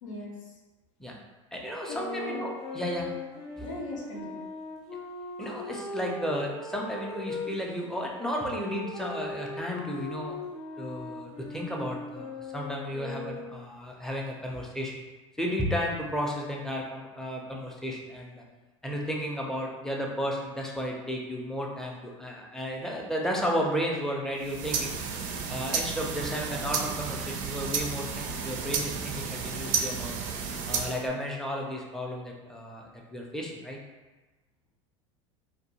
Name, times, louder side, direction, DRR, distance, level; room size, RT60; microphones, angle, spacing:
voice 1, 0.0-0.3 1.9-2.4 3.6-4.4, left 2 dB, 80° left, -3 dB, 0.6 m, -39 dB
voice 2, 1.5-3.1 3.6-3.7 5.4-10.4 10.8-14.9 15.4-18.4 18.8-25.0 25.5-30.1 30.7-33.8, equal, 5° left, -2 dB, 0.5 m, -33 dB
sound 1, 1.9-7.5 8.2-13.7, left 2 dB, 40° left, 0.7 m, -39 dB
sound 2, 24.4-31.1, right 6 dB, 55° right, 0.4 m, -32 dB
2.5 x 2.2 x 2.9 m, 1.2 s
hypercardioid pair, 85°, 16 cm